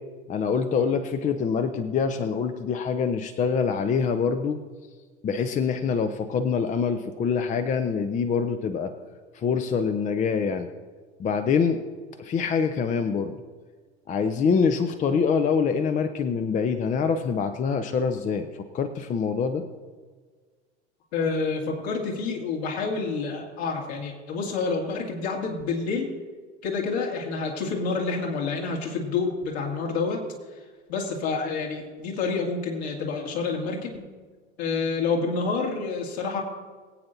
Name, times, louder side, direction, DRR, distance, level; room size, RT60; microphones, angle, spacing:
voice 1, 0.3-4.6 5.2-8.9 9.3-10.7 11.2-11.8 12.2-13.3 14.1-18.5 18.7-19.6, left 6 dB, 20° left, 8 dB, 0.7 m, -25 dB
voice 2, 21.1-26.1 26.6-30.2 30.9-34.1 34.6-36.4, left 4 dB, 60° left, -1 dB, 2.5 m, -28 dB
21.5 x 8.8 x 2.7 m, 1.5 s
figure-of-eight pair, 75°, 35 cm